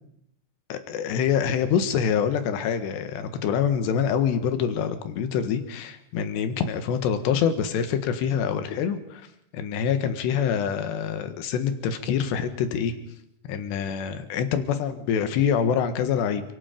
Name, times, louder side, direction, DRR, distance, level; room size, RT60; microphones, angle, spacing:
voice 1, 0.7-9.3 9.5-12.9 13.5-16.4, left 7 dB, 75° left, 9 dB, 3.6 m, -25 dB
28.5 x 17.5 x 5.3 m, 0.77 s
omnidirectional pair, 5.2 m